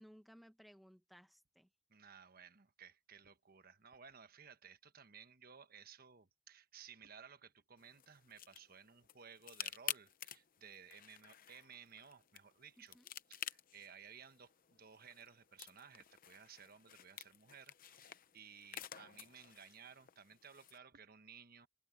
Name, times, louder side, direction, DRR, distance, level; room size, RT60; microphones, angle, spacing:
voice 1, 0.0-1.7 12.8-13.1, equal, ahead, 1.6 m, -61 dB
voice 2, 1.9-13.0 13.3-21.7, right 7 dB, 50° right, 1.2 m, -58 dB
sound 1, 7.8-20.8, left 10 dB, 45° left, 0.8 m, -51 dB
head